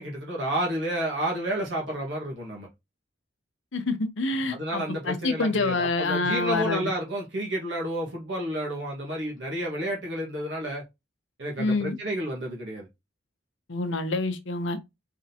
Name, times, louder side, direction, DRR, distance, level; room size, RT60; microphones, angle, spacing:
voice 1, 0.0-2.7 4.5-10.8 11.4-12.9, right 1 dB, 65° right, 1.6 m, -30 dB
voice 2, 3.7-6.9 11.6-12.0 13.7-14.8, left 3 dB, 75° left, 0.8 m, -27 dB
5.0 x 3.7 x 2.9 m
head